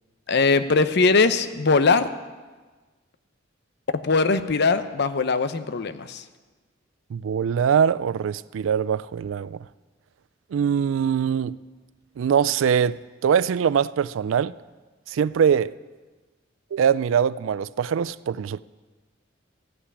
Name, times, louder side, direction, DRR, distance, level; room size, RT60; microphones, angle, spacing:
voice 1, 0.3-2.1 4.0-6.2, left 4 dB, 60° left, 11 dB, 0.7 m, -20 dB
voice 2, 7.1-9.6 10.5-11.5 12.2-13.0 13.2-14.5 15.1-15.7 16.7-18.6, right 7 dB, 85° right, 19 dB, 0.3 m, -22 dB
15.0 x 5.8 x 9.7 m, 1.3 s
head